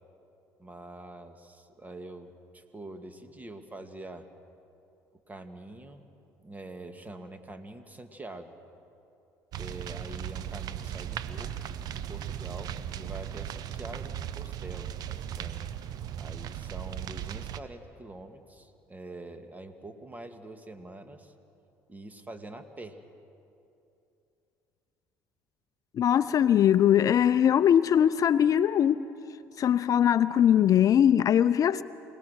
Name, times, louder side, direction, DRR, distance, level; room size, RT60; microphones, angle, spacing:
voice 1, 0.6-4.3 5.3-6.1 6.4-8.6 9.6-15.7 16.2-21.3 21.9-23.0, right 2 dB, 20° right, 7 dB, 2.0 m, -45 dB
sound 1, 9.5-17.6, right 10 dB, 60° right, 0.9 m, -37 dB
voice 2, 25.9-31.8, left 9 dB, 50° left, 15 dB, 0.5 m, -22 dB
28.0 x 19.0 x 6.4 m, 2.8 s
hypercardioid pair, 70°, 8 cm